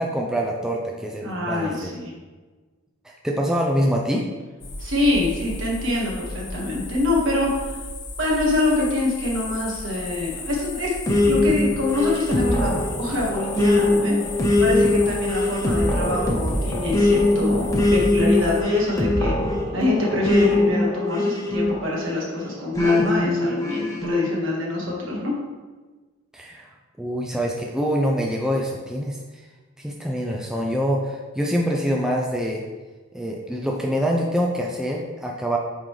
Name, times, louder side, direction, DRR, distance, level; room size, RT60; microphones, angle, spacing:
voice 1, 0.0-1.9 3.0-4.3 26.3-26.7 27.0-29.2 29.8-32.6 33.1-35.6, equal, 5° right, -1 dB, 0.4 m, -25 dB
voice 2, 1.2-2.1 4.8-7.5 8.2-10.9 11.3-14.2 14.6-19.3 19.7-25.3, left 2 dB, 65° right, -3 dB, 1.6 m, -25 dB
sound 1, 4.6-18.6, left 3 dB, 55° left, 0.9 m, -35 dB
sound 2, 11.1-22.1 22.8-24.3, left 2 dB, 15° left, 1.0 m, -21 dB
8.6 x 3.8 x 3.2 m, 1.3 s
head